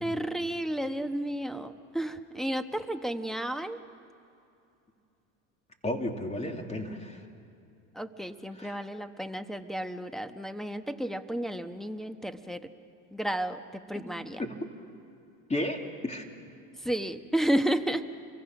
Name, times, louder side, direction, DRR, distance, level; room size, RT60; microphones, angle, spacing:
voice 1, 0.0-3.8 7.9-12.7 13.1-14.4 16.8-18.1, right 1 dB, ahead, 6 dB, 1.2 m, -32 dB
voice 2, 5.8-7.2 8.6-8.8 14.4-14.6 15.5-16.3, left 1 dB, 15° left, 3 dB, 2.8 m, -33 dB
29.0 x 23.5 x 6.1 m, 2.6 s
supercardioid pair, 90°, 40 cm